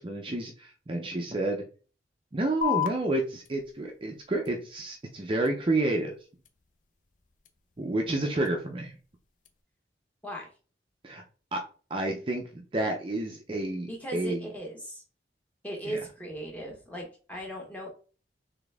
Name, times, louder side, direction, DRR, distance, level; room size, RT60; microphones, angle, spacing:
voice 1, 0.0-1.6 2.3-6.1 7.8-9.0 11.0-11.2 11.5-11.6 11.9-14.5 15.9-16.0, right 2 dB, 30° right, 2 dB, 0.5 m, -30 dB
sound 1, 2.6-9.6, left 11 dB, 45° left, 0.5 m, -39 dB
voice 2, 13.9-15.0 15.6-17.9, right 1 dB, 10° left, -1 dB, 1.2 m, -37 dB
4.0 x 3.5 x 3.4 m, 0.38 s
head